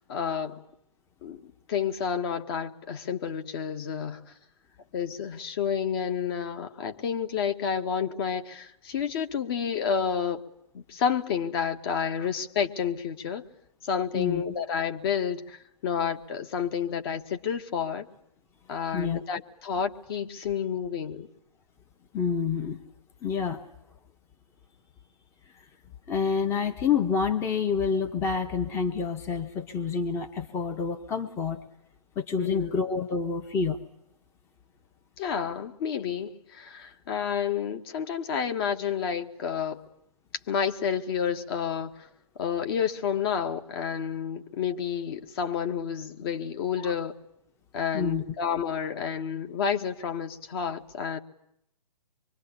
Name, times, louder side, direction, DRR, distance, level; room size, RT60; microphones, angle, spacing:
voice 1, 0.1-0.6 1.2-4.2 4.9-10.5 10.7-13.4 13.8-18.1 18.7-21.3 32.4-32.7 35.2-39.8 40.5-42.1 42.4-47.1 47.7-51.2, left 7 dB, 40° left, 1.9 m, -30 dB
voice 2, 14.1-14.4 18.9-19.2 22.1-22.8 23.2-23.6 26.1-31.6 32.2-33.8 46.8-46.9 47.9-48.2, left 5 dB, 15° left, 1.1 m, -28 dB
25.5 x 23.5 x 9.9 m
hypercardioid pair, 150°, 19 cm